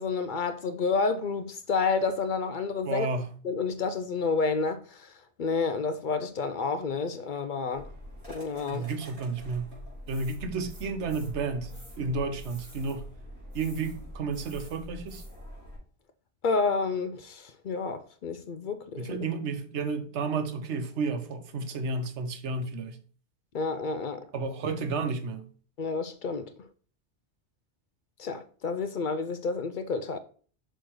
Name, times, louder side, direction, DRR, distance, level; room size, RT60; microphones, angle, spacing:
voice 1, 0.0-3.1 3.4-5.1 5.4-7.9 8.3-8.9 16.4-19.2 23.5-24.3 25.8-26.5 28.2-30.2, left 4 dB, 60° left, 0.6 m, -30 dB
voice 2, 2.8-3.3 8.7-9.7 10.1-11.7 12.0-13.1 13.5-15.2 19.0-23.0 24.3-25.4, right 4 dB, 90° right, 1.1 m, -31 dB
sound 1, 7.7-15.8, equal, 30° right, 4.1 m, -44 dB
6.1 x 4.4 x 4.6 m
omnidirectional pair, 1.1 m